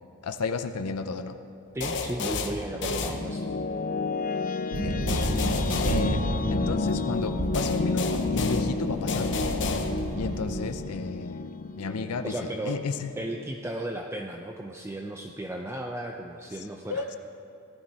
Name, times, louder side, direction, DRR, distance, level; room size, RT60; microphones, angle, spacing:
voice 1, 0.2-1.4 4.8-5.0 5.8-6.2 6.5-9.4 10.2-11.5 11.8-13.1 16.6-17.2, left 4 dB, 85° left, 8 dB, 0.6 m, -32 dB
voice 2, 1.7-3.5 12.2-12.8 13.2-17.0, right 1 dB, 10° right, 2 dB, 0.5 m, -35 dB
sound 1, 1.8-3.7 5.1-6.8 7.5-10.3, left 3 dB, 55° left, 1.0 m, -32 dB
sound 2, 2.7-13.5, left 3 dB, 40° left, 0.5 m, -31 dB
sound 3, 4.7-10.8, right 1 dB, 55° right, 1.1 m, -32 dB
17.5 x 12.5 x 4.3 m, 2.9 s
head